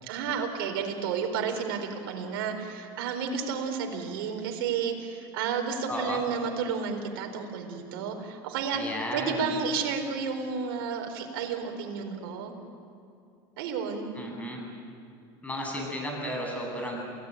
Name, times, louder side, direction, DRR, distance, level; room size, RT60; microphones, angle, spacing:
voice 1, 0.0-8.8 9.1-12.6 13.6-14.1, right 6 dB, 80° right, 3 dB, 4.3 m, -31 dB
voice 2, 5.9-6.2 8.7-9.5 14.1-14.6 15.4-17.0, equal, 10° left, 0 dB, 8.0 m, -33 dB
28.5 x 18.0 x 9.3 m, 2.5 s
supercardioid pair, 120°, 12 cm